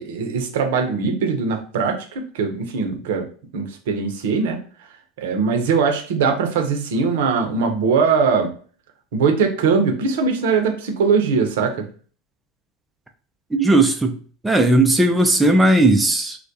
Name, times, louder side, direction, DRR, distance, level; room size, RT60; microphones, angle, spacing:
voice 1, 0.0-3.3 3.5-4.6 5.2-8.5 9.1-11.9, right 5 dB, 70° right, 0.6 m, -21 dB
voice 2, 13.5-14.1 14.4-16.4, right 2 dB, 10° right, 0.4 m, -16 dB
2.2 x 2.1 x 2.7 m
hypercardioid pair, 85°, 0 cm